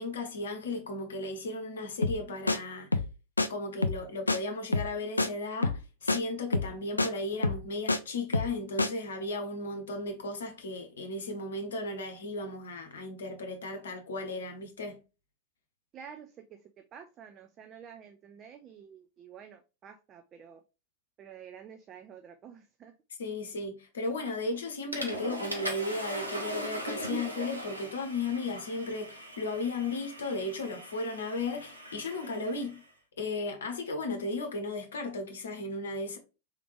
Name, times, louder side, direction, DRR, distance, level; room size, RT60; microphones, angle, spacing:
voice 1, 0.0-3.0 3.5-15.0 23.2-32.8 33.2-36.2, left 2 dB, 65° left, 0.9 m, -35 dB
sound 1, 2.0-2.2 2.5-2.6 2.9-3.1 3.4-3.5 3.8-4.0 4.3-4.4 4.7-4.9 5.2-5.3 5.6-5.8 6.1-6.2 6.5-6.7 7.0-7.1 7.4-8.0 8.3-8.5 8.8-8.9, left 3 dB, 80° left, 0.3 m, -27 dB
voice 2, 15.9-20.6 21.2-22.9, right 8 dB, 30° right, 0.4 m, -50 dB
Water / Toilet flush, 24.3-24.5 24.9-32.8, right 1 dB, 85° right, 0.8 m, -40 dB
3.6 x 3.4 x 3.1 m
figure-of-eight pair, 90°, 0 cm